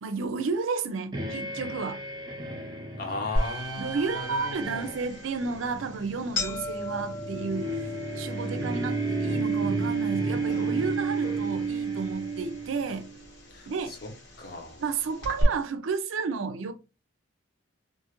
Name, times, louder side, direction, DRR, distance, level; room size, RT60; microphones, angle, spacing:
voice 1, 0.0-2.0 3.8-7.9 8.2-13.1 13.7-14.0 14.8-16.7, right 4 dB, 90° right, 0.5 m, -32 dB
sound 1, 1.1-13.2, right 3 dB, 20° right, 0.5 m, -32 dB
voice 2, 3.0-5.0 13.5-14.8, left 3 dB, 50° left, 0.8 m, -37 dB
sound 2, 3.4-15.4, left 1 dB, 75° left, 1.4 m, -38 dB
2.5 x 2.4 x 2.9 m
head